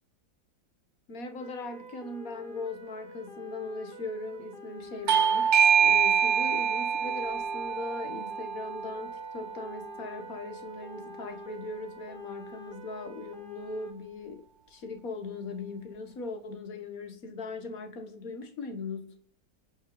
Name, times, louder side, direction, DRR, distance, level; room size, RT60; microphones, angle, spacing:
voice 1, 1.1-19.0, left 3 dB, 65° left, 1.9 m, -39 dB
sound 1, 1.4-13.9, equal, 30° right, 2.2 m, -47 dB
Bell / Doorbell, 5.1-10.3, right 7 dB, 55° right, 0.9 m, -26 dB
29.0 x 9.8 x 4.0 m
omnidirectional pair, 1.7 m